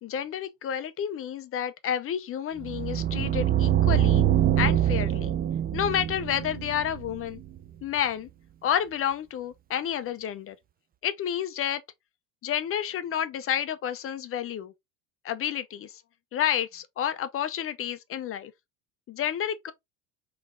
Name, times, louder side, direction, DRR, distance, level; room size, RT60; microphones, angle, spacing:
voice 1, 0.0-4.2 4.6-5.3 5.7-7.4 7.8-8.3 8.6-10.5 11.0-11.8 12.4-14.7 15.2-15.9 16.3-18.5 19.1-19.7, left 10 dB, 35° left, 0.8 m, -30 dB
sound 1, 2.6-7.6, right 11 dB, 25° right, 0.6 m, -25 dB
3.8 x 3.3 x 3.7 m
supercardioid pair, 100°, 39 cm